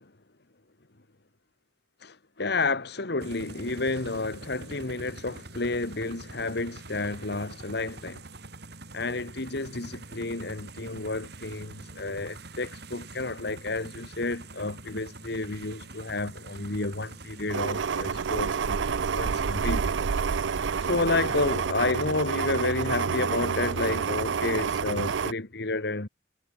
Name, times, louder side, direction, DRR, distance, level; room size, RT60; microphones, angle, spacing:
voice 1, 2.0-8.2 8.9-19.9 20.8-26.1, left 3 dB, 65° left, 1.8 m, -31 dB
sound 1, 3.2-21.7, right 2 dB, 65° right, 5.9 m, -45 dB
sound 2, 17.5-25.3, right 6 dB, 90° right, 0.5 m, -28 dB
head